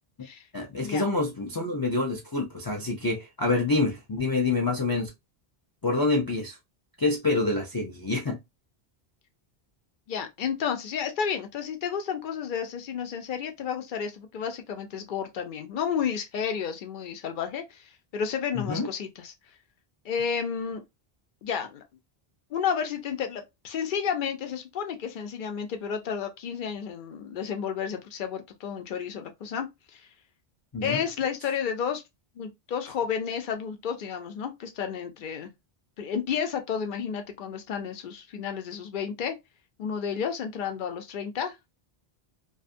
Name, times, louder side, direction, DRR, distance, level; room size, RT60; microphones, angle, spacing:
voice 1, 0.5-5.1 5.8-6.6 7.0-8.4 18.5-18.9 30.7-31.0, left 3 dB, 35° left, 0.3 m, -27 dB
voice 2, 10.1-17.8 18.1-19.3 20.0-20.8 21.4-21.8 22.5-30.1 30.8-32.0 32.4-35.5 36.0-39.3 39.8-41.7, left 7 dB, 60° left, 0.7 m, -31 dB
2.4 x 2.4 x 2.5 m
omnidirectional pair, 1.0 m